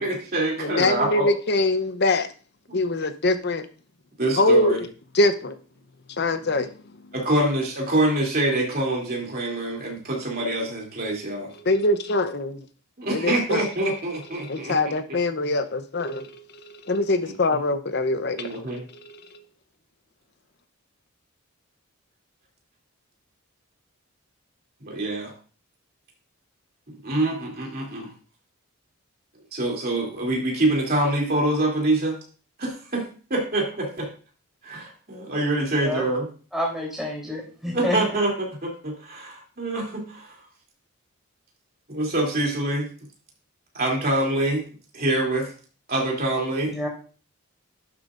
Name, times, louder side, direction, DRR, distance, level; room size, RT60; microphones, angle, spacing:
voice 1, 0.0-1.3 2.7-2.8 4.2-4.8 7.1-11.5 13.0-14.8 17.5-17.6 18.4-18.8 24.8-25.3 27.0-28.1 29.5-32.2 32.6-34.1 34.6-36.3 37.6-40.3 41.9-42.9 43.7-44.6 44.9-45.5 45.9-46.7, right 1 dB, 45° right, -1 dB, 2.9 m, -25 dB
voice 2, 0.6-2.3 2.7-3.7 4.4-4.9 5.1-5.6 6.2-6.7 11.5-12.6 13.1-13.6 14.5-19.2, left 2 dB, 50° left, 9 dB, 0.7 m, -23 dB
voice 3, 36.5-38.0 46.7-46.9, left 1 dB, ahead, -3 dB, 3.2 m, -28 dB
11.5 x 7.4 x 2.5 m, 0.39 s
head